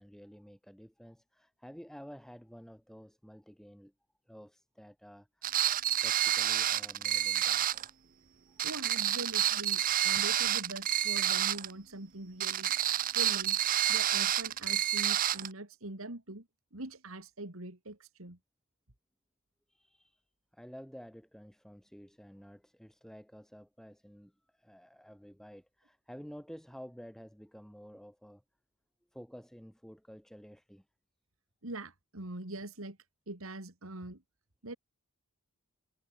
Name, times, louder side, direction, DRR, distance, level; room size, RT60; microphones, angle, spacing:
voice 1, 0.0-3.9 4.3-5.5 6.0-7.9 8.6-8.7 19.7-20.2 20.5-28.4 29.1-30.9, equal, ahead, 3.5 m, -51 dB
sound 1, 5.4-7.9 8.6-11.7 12.4-15.5, right 11 dB, 40° right, 0.6 m, -29 dB
voice 2, 8.6-12.7 13.1-13.6 13.9-16.5 16.7-18.4 31.6-33.0 33.3-34.2 34.6-34.8, right 2 dB, 65° right, 2.9 m, -43 dB
head